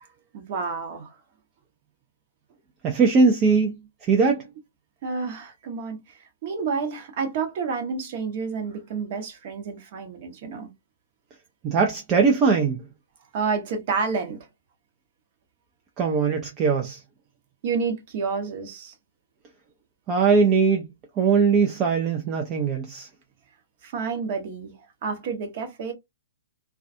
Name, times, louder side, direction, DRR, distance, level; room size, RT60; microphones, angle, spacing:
voice 1, 0.3-1.1 5.0-10.7 13.3-14.5 17.6-18.9 23.8-24.7 25.0-25.9, right 5 dB, 45° right, 0.8 m, -29 dB
voice 2, 2.8-3.7 4.0-4.4 11.6-12.8 16.0-17.0 20.1-20.8 21.2-23.1, right 5 dB, 25° right, 0.4 m, -20 dB
2.3 x 2.2 x 2.5 m
figure-of-eight pair, 120°, 0 cm